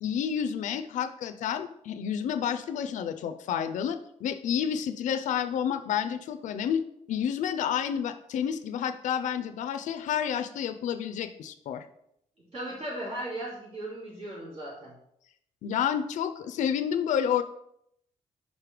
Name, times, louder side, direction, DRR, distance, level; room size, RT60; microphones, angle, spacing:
voice 1, 0.0-6.8 7.1-11.9 15.6-17.4, left 8 dB, 75° left, 9 dB, 0.5 m, -30 dB
voice 2, 12.5-14.9, right 1 dB, 50° right, -6 dB, 2.4 m, -37 dB
5.3 x 4.9 x 5.1 m, 0.73 s
cardioid pair, 155°, 13 cm